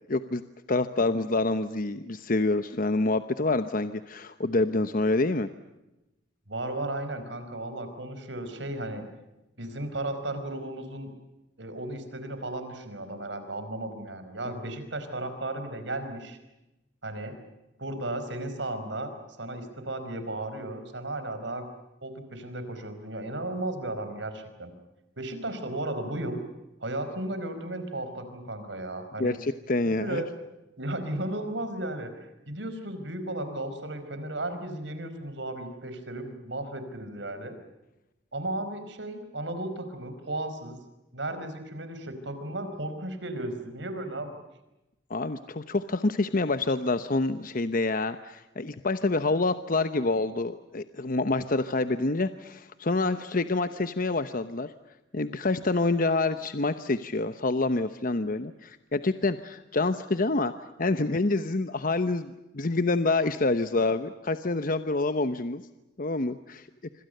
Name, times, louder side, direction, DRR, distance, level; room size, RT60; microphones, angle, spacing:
voice 1, 0.1-0.4 0.7-5.5 29.2-30.2 45.1-54.7 55.1-60.5 60.8-65.6 66.0-66.7, left 2 dB, 50° left, 11 dB, 1.0 m, -27 dB
voice 2, 6.5-9.0 9.6-11.1 11.6-16.4 17.0-17.4 17.8-19.1 19.4-21.6 22.0-24.7 25.2-26.4 26.8-29.4 30.0-30.3 30.8-37.5 38.3-40.8 41.1-44.3, right 1 dB, 80° right, 9 dB, 5.0 m, -35 dB
26.5 x 26.0 x 6.7 m, 0.96 s
head